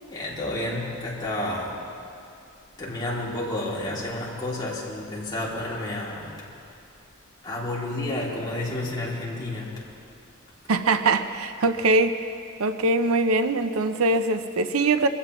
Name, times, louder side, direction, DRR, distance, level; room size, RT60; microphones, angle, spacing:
voice 1, 0.1-1.8 2.8-6.3 7.4-9.8, left 1 dB, 20° left, -6 dB, 2.8 m, -30 dB
voice 2, 10.7-12.1 12.6-15.1, right 2 dB, 80° right, 9 dB, 0.6 m, -22 dB
22.5 x 15.5 x 3.1 m, 2.5 s
head